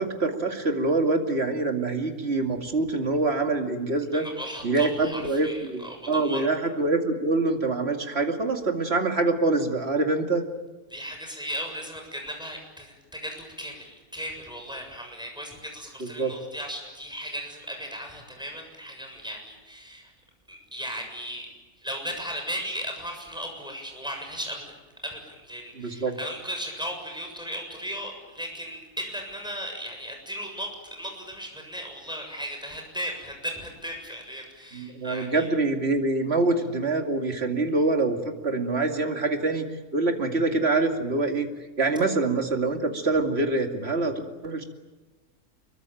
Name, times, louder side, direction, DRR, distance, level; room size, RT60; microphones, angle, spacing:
voice 1, 0.0-4.2 4.6-10.4 16.2-16.3 25.8-26.1 34.7-38.2 38.4-39.6 39.9-41.5 41.8-44.1 44.4-44.6, right 3 dB, 45° right, 4 dB, 2.7 m, -25 dB
voice 2, 4.1-6.5 10.9-20.1 20.5-21.4 21.8-24.7 25.0-35.5, equal, 5° right, 2 dB, 7.2 m, -36 dB
25.5 x 23.0 x 9.2 m, 1.2 s
omnidirectional pair, 1.5 m